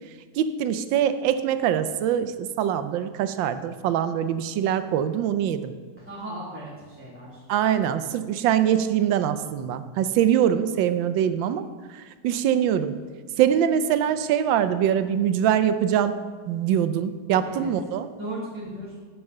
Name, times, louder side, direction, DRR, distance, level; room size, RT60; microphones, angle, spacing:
voice 1, 0.4-5.7 7.5-11.6 11.9-12.9 13.4-16.2 16.5-18.1, right 9 dB, 85° right, 11 dB, 1.4 m, -23 dB
voice 2, 6.0-7.4 17.4-17.7 18.2-19.0, right 1 dB, 5° right, -9 dB, 2.0 m, -36 dB
8.8 x 6.0 x 6.5 m, 1.5 s
omnidirectional pair, 2.0 m